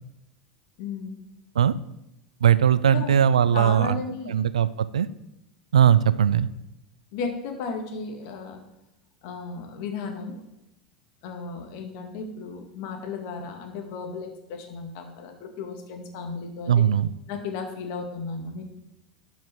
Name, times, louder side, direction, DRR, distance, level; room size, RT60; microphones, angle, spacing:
voice 1, 0.8-1.2 2.9-3.1 3.5-4.4 7.1-8.6 9.2-10.4 11.2-16.8 17.3-18.7, left 4 dB, 60° left, 4 dB, 2.0 m, -34 dB
voice 2, 2.4-4.0 4.3-5.1 5.7-6.5 16.7-17.1, right 9 dB, 80° right, 16 dB, 0.4 m, -19 dB
12.0 x 5.3 x 4.6 m, 0.88 s
hypercardioid pair, 85°, 3 cm